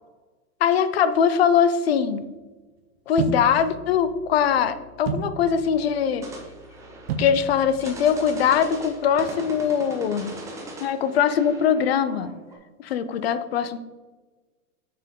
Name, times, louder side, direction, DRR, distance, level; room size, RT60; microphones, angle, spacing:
voice 1, 0.6-2.2 3.1-6.3 7.2-10.3 10.8-12.4 12.8-13.8, left 7 dB, 45° left, 12 dB, 0.5 m, -22 dB
sound 1, 3.2-9.2, right 4 dB, 45° right, 0.7 m, -35 dB
sound 2, 6.2-12.5, right 2 dB, 5° right, 0.7 m, -40 dB
6.8 x 6.7 x 3.7 m, 1.2 s
hypercardioid pair, 145°, 44 cm